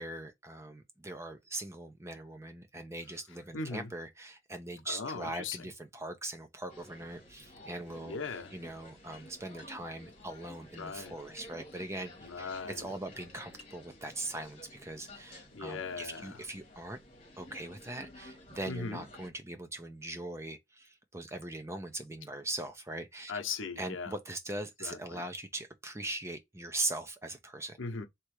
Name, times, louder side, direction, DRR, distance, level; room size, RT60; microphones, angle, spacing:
voice 1, 0.0-8.2 8.5-17.0 17.4-23.3 23.8-27.8, right 2 dB, 15° right, 0.6 m, -41 dB
voice 2, 3.5-3.9 4.9-5.6 8.0-8.5 10.8-11.1 12.2-12.9 15.5-16.4 18.7-19.0 23.3-24.1 24.8-25.2 27.8-28.1, left 4 dB, 80° left, 0.8 m, -39 dB
sound 1, 6.7-19.3, left 1 dB, 30° left, 1.5 m, -53 dB
3.4 x 3.0 x 4.8 m
head